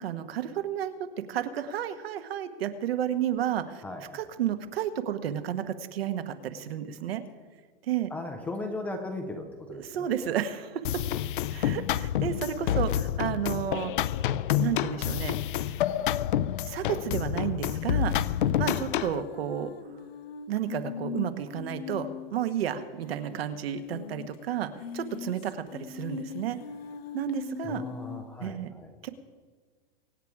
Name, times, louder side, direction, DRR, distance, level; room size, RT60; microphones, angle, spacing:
voice 1, 0.0-3.8 4.1-7.2 7.8-8.1 9.7-11.0 11.5-13.9 14.6-15.4 16.6-19.7 20.5-26.6 27.1-27.8 28.4-28.7 29.0-29.1, right 10 dB, 75° right, 9 dB, 1.5 m, -32 dB
voice 2, 3.8-4.2 8.1-10.3 27.6-28.9, left 2 dB, 5° left, 4 dB, 0.4 m, -37 dB
sound 1, 10.8-19.2, left 11 dB, 55° left, 0.5 m, -28 dB
sound 2, 17.6-22.5 22.8-22.9 23.1-23.2 23.8-24.4 24.7-28.3, left 7 dB, 75° left, 1.2 m, -40 dB
24.0 x 8.8 x 4.8 m, 1.5 s
supercardioid pair, 170°, 30 cm